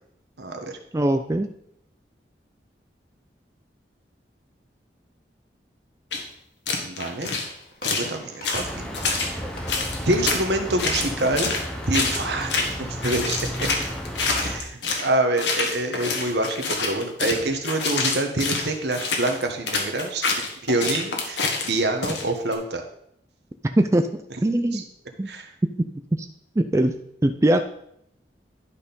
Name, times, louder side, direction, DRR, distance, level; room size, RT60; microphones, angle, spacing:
voice 1, 0.4-0.8 6.8-7.3 7.8-8.9 9.1-9.4 10.0-11.5 11.9-13.7 14.4-22.8 24.7-24.8 25.3-25.5, right 2 dB, 75° right, 5 dB, 1.2 m, -26 dB
voice 2, 0.9-1.5 23.8-24.8 25.2-25.3 26.2-26.3 26.6-27.6, right 1 dB, 15° right, 7 dB, 0.3 m, -22 dB
sound 1, 6.1-6.2 6.7-7.5 7.8-8.1 8.4-9.3 9.7-10.4 10.8-11.6 11.9-12.2 12.5-12.8 13.0-15.1 15.4-22.5, left 4 dB, 90° left, 1.6 m, -26 dB
Walk footsteps / Slam, 7.2-12.8, left 1 dB, 55° left, 1.7 m, -45 dB
sound 2, 8.5-14.6, equal, 5° left, 0.8 m, -33 dB
11.0 x 4.3 x 5.3 m, 0.72 s
head